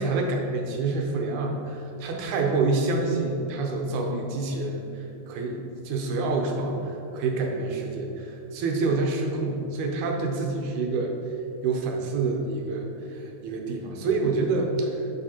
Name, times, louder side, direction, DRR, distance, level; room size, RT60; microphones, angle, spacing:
voice 1, 0.0-5.6 5.9-11.1 11.6-15.0, right 3 dB, 80° right, 1 dB, 2.2 m, -27 dB
7.2 x 6.3 x 2.9 m, 2.8 s
omnidirectional pair, 3.4 m